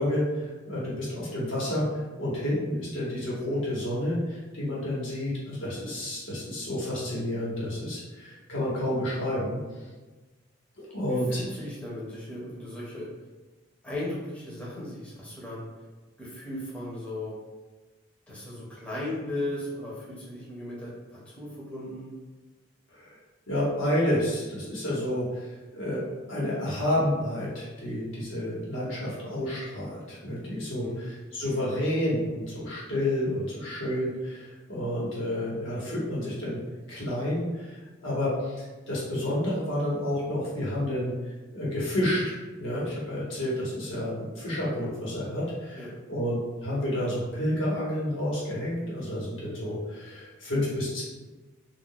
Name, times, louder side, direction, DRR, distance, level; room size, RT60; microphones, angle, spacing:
voice 1, 0.0-9.8 10.9-11.4 22.9-23.2 23.5-26.0 26.3-36.6 36.9-41.1 41.5-51.0, left 1 dB, 80° left, -7 dB, 1.1 m, -30 dB
voice 2, 11.3-13.1 13.8-15.7 16.2-17.3 18.3-20.9 21.3-22.1 30.7-31.1 45.7-45.9, left 1 dB, 5° left, -7 dB, 0.7 m, -36 dB
2.4 x 2.1 x 3.6 m, 1.2 s
head